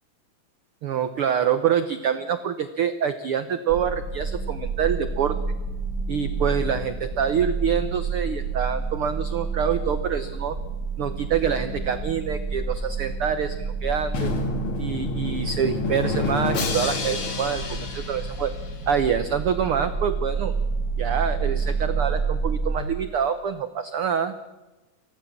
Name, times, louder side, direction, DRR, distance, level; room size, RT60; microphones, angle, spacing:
voice 1, 0.8-5.4 6.1-10.6 11.0-14.3 14.8-18.5 18.9-20.5 21.0-24.3, right 8 dB, 75° right, 10 dB, 1.2 m, -26 dB
sound 1, 3.7-22.8, right 4 dB, 40° right, 2.1 m, -29 dB
Drum, 14.1-19.0, left 3 dB, 45° left, 2.9 m, -28 dB
24.0 x 16.5 x 7.3 m, 1.1 s
omnidirectional pair, 3.8 m